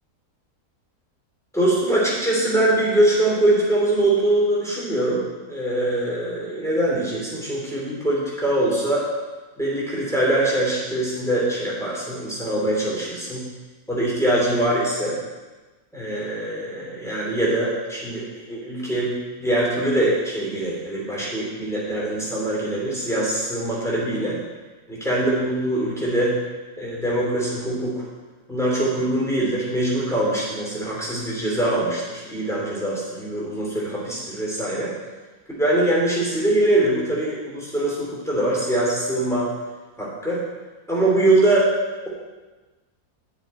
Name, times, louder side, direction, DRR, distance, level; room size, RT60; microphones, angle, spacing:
voice 1, 1.5-5.2 5.5-9.1 9.6-13.4 13.9-15.2 15.9-24.4 24.9-26.4 26.8-28.0 28.5-34.9 35.6-39.5 40.0-40.4 40.9-41.7, right 1 dB, ahead, -5 dB, 2.9 m, -23 dB
11.0 x 7.0 x 4.4 m, 1.2 s
omnidirectional pair, 1.6 m